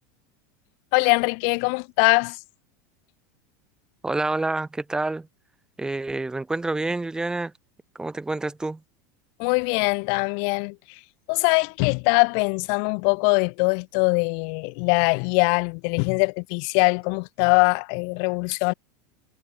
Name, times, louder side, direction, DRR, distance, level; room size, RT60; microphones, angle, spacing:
voice 1, 0.9-2.4 9.4-11.0 11.3-18.7, left 40 dB or more, 60° left, 0.5 m, -22 dB
voice 2, 4.0-5.3 5.8-7.5 7.9-8.8, right 2 dB, 10° right, 0.9 m, -28 dB
supercardioid pair, 135°, 9 cm